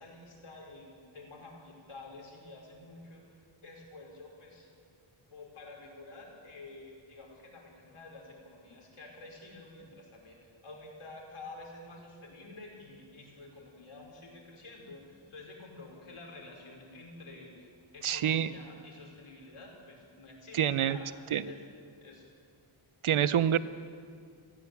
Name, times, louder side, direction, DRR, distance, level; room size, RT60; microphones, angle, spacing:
voice 1, 0.0-4.7 5.3-21.1 21.4-21.6 22.0-22.2, left 2 dB, 75° left, 0 dB, 5.1 m, -49 dB
voice 2, 18.0-18.5 20.5-21.0 21.3-21.4 23.0-23.6, right 10 dB, 75° right, 14 dB, 0.8 m, -26 dB
20.5 x 15.5 x 8.4 m, 2.2 s
wide cardioid pair, 115°, 49 cm